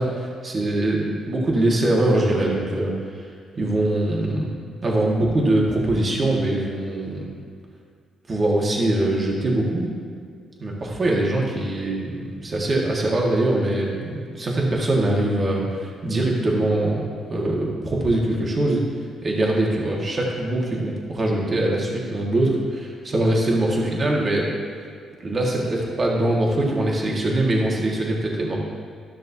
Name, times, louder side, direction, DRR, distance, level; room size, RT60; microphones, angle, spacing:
voice 1, 0.0-3.3 3.5-4.5 4.8-7.3 8.3-9.9 10.6-18.8 19.2-24.5 25.2-28.6, right 1 dB, 35° right, -3 dB, 1.7 m, -22 dB
13.0 x 6.3 x 2.8 m, 2.1 s
cardioid pair, 90°, 0 cm